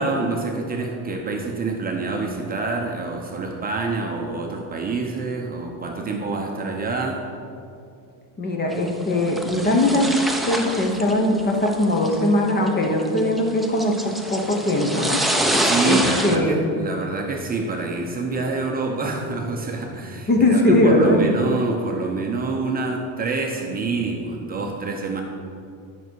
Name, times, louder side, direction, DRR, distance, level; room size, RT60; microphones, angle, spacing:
voice 1, 0.0-7.2 15.6-25.2, right 3 dB, 25° right, 1 dB, 0.8 m, -27 dB
voice 2, 8.4-10.1 10.4-14.0 14.3-15.2 15.8-16.6 20.3-21.2, left 1 dB, 25° left, 2 dB, 1.1 m, -20 dB
sound 1, 8.7-16.4, right 1 dB, ahead, 0.5 m, -26 dB
11.0 x 6.2 x 4.6 m, 2.4 s
cardioid pair, 140°, 38 cm